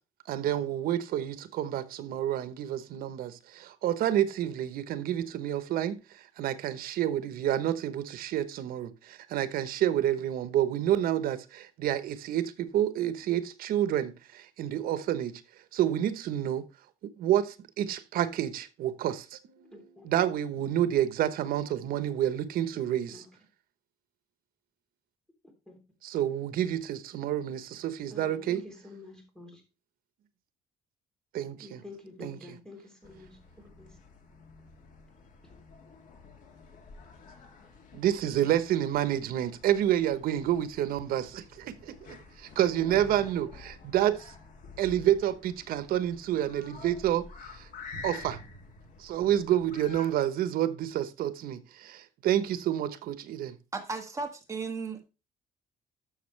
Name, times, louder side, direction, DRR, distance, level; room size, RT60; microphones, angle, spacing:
voice 1, 0.3-15.4 15.7-16.7 17.2-23.2 26.0-28.6 31.3-31.8 32.2-32.4 37.9-44.3 44.8-47.3 47.5-47.7 48.0-48.4 49.0-53.5, right 11 dB, 80° right, 1.1 m, -29 dB
voice 2, 19.7-20.1 23.1-23.3 25.7-25.8 28.1-29.6 31.6-34.0, left 2 dB, 5° left, 3.4 m, -48 dB
sound 1, 33.0-50.1, left 4 dB, 60° left, 2.7 m, -49 dB
voice 3, 53.7-55.0, right 4 dB, 20° right, 1.7 m, -35 dB
12.5 x 6.4 x 3.3 m
cardioid pair, 170°, 15 cm